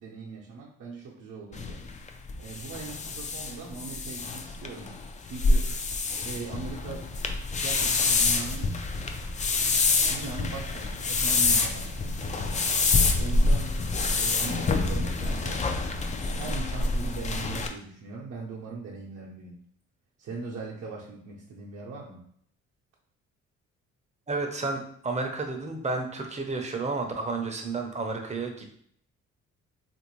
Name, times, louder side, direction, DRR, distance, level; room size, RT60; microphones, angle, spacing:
voice 1, 0.0-1.9 2.4-5.8 6.2-7.2 7.6-8.8 10.1-12.5 13.2-13.8 14.2-15.7 16.2-19.6 20.2-22.3, right 4 dB, 55° right, -4 dB, 0.8 m, -40 dB
sound 1, 1.5-17.7, left 3 dB, 25° left, 0.3 m, -27 dB
voice 2, 24.3-28.7, right 3 dB, 25° right, 3 dB, 0.6 m, -31 dB
3.1 x 2.6 x 3.0 m, 0.64 s
cardioid pair, 90°, 30 cm